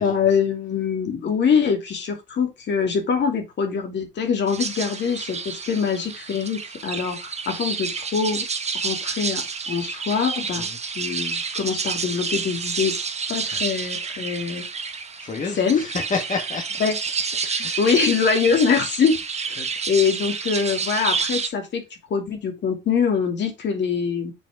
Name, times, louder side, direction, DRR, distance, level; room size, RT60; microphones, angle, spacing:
voice 1, 0.0-8.5 8.8-10.7 10.9-12.9 13.3-14.7 15.6-15.8 16.8-17.0 17.4-19.2 19.5-21.8 22.1-24.3, left 6 dB, 65° left, 2.6 m, -23 dB
sound 1, 4.5-21.5, right 5 dB, 35° right, 1.1 m, -29 dB
voice 2, 15.2-16.7 17.6-17.8 19.6-19.7, left 4 dB, 40° left, 1.7 m, -29 dB
7.0 x 4.3 x 4.9 m
cardioid pair, 90°, 20 cm